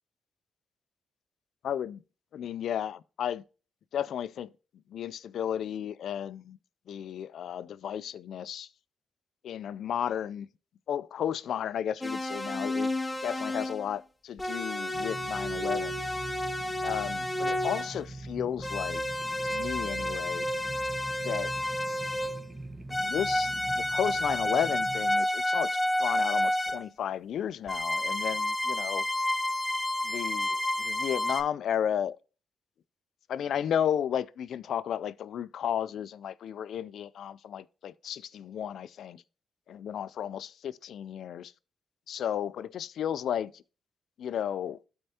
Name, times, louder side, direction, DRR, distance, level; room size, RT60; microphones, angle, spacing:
voice 1, 1.6-2.0 2.3-3.4 3.9-4.5 4.9-6.6 6.9-8.7 9.4-10.5 10.9-12.9 13.2-16.0 16.8-19.0 19.4-20.5 21.2-21.5 22.9-25.7 26.0-29.0 30.0-32.2 33.3-39.2 39.7-41.5 42.1-43.6 44.2-44.8, left 9 dB, 75° left, 0.3 m, -33 dB
sound 1, 12.0-13.9 14.4-18.0 18.6-22.5 22.9-26.8 27.7-31.4, left 1 dB, 15° left, 0.7 m, -30 dB
sound 2, 14.9-25.1, right 2 dB, 25° right, 1.1 m, -43 dB
12.5 x 4.4 x 2.7 m
cardioid pair, 75°, 0 cm